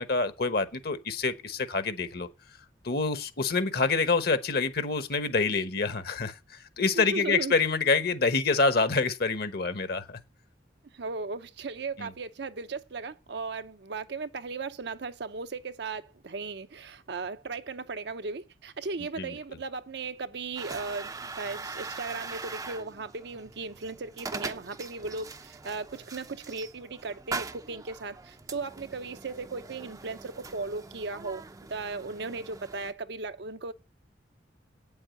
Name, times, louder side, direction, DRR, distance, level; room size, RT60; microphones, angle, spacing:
voice 1, 0.0-2.3 2.8-10.2 12.0-12.1 19.2-19.4, left 4 dB, 55° left, 1.1 m, -27 dB
voice 2, 6.9-7.6 10.9-31.4 31.7-33.7, right 4 dB, 60° right, 0.7 m, -37 dB
sound 1, 20.6-32.9, right 4 dB, 20° right, 0.5 m, -42 dB
9.0 x 7.1 x 8.3 m
head